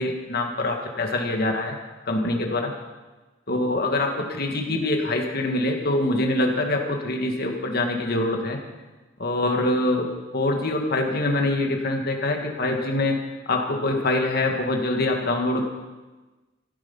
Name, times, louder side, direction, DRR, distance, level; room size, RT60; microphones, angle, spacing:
voice 1, 0.0-1.8 2.1-2.7 3.5-8.6 9.2-13.2 13.5-15.6, left 2 dB, 55° left, 2 dB, 2.1 m, -24 dB
15.0 x 12.5 x 5.6 m, 1.2 s
head